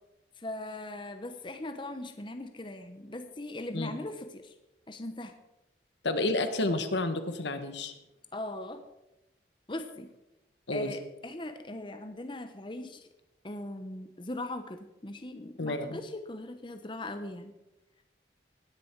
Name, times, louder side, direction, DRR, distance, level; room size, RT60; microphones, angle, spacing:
voice 1, 0.4-4.5 4.9-5.3 8.3-8.8 9.7-10.1 10.7-13.1 13.4-17.5, left 1 dB, 25° left, 7 dB, 0.8 m, -39 dB
voice 2, 6.0-7.9 10.7-10.9 15.6-16.0, left 2 dB, 80° left, 8 dB, 1.4 m, -30 dB
18.5 x 10.5 x 4.6 m, 0.97 s
head